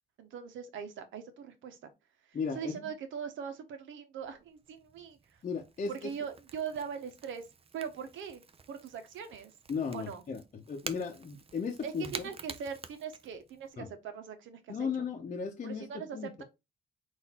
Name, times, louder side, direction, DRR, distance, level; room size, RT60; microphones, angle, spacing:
voice 1, 0.2-1.9 2.5-5.2 5.9-7.4 7.7-8.4 8.7-9.5 9.9-10.2 11.8-14.9 15.6-16.4, right 7 dB, 80° right, 1.0 m, -41 dB
voice 2, 2.3-2.8 5.4-6.1 9.7-12.3 13.8-13.9 14.7-16.3, left 5 dB, 40° left, 0.8 m, -36 dB
Crackle / Crack, 4.2-13.7, right 5 dB, 30° right, 0.6 m, -49 dB
3.9 x 2.7 x 4.1 m
cardioid pair, 90°, 20 cm